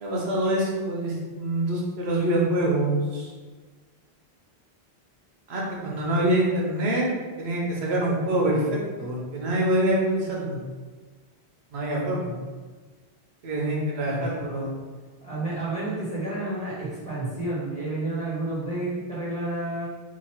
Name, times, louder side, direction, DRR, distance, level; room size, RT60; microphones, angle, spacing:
voice 1, 0.0-3.3 5.5-7.1 7.4-10.6 11.7-12.3 13.4-14.8, right 1 dB, 85° right, -3 dB, 1.1 m, -25 dB
voice 2, 14.1-14.7 15.2-19.9, right 2 dB, 5° left, -9 dB, 1.2 m, -30 dB
3.0 x 2.4 x 4.3 m, 1.4 s
omnidirectional pair, 1.0 m